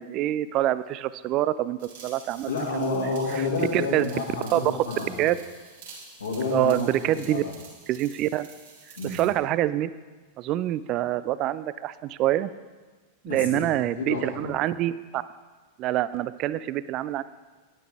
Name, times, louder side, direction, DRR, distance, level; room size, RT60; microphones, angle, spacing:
voice 1, 0.0-3.4 3.7-4.0 4.5-4.6 5.2-5.4 6.5-7.4 7.9-8.5 9.0-9.9 10.4-12.5 13.2-15.2 15.8-17.2, right 14 dB, 35° right, 16 dB, 0.4 m, -26 dB
sound 1, 1.8-9.3, right 4 dB, 60° right, 2.8 m, -48 dB
voice 2, 2.5-5.2 6.2-7.5 9.0-9.2 13.3-13.6 14.0-14.5, left 4 dB, 70° left, -3 dB, 2.1 m, -30 dB
10.5 x 9.7 x 3.6 m, 1.3 s
figure-of-eight pair, 90°, 0 cm